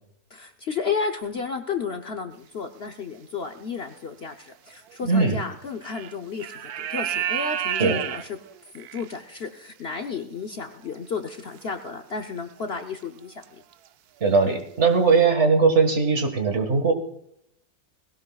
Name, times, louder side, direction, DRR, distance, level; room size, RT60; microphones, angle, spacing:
voice 1, 0.3-8.4 8.7-13.6, left 5 dB, 50° left, 5 dB, 0.9 m, -32 dB
sound 1, 3.6-3.8 4.9-5.0 5.8-6.1 6.4-9.2 11.0-11.1 11.6-11.7 12.6-12.9 13.2-13.4 13.7-13.8, right 10 dB, 80° right, 1.2 m, -30 dB
voice 2, 5.0-5.4 7.8-8.0 14.2-16.9, right 4 dB, 50° right, 6 dB, 1.9 m, -20 dB
19.5 x 17.0 x 2.3 m, 0.73 s
omnidirectional pair, 1.6 m